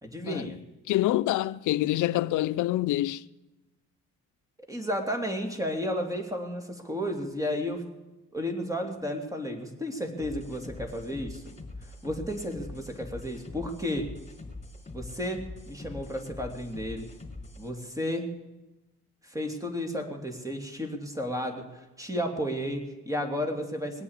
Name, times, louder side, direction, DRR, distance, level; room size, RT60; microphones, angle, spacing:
voice 1, 0.0-0.6 4.6-7.9 8.3-11.4 12.0-14.1 14.9-17.1 17.6-18.3 19.2-24.0, equal, 10° right, 3.1 m, -33 dB
voice 2, 0.9-3.2, left 15 dB, 80° left, 0.6 m, -26 dB
sound 1, 10.2-17.7, left 2 dB, 25° left, 4.1 m, -43 dB
20.0 x 8.4 x 8.3 m
cardioid pair, 90°, 30 cm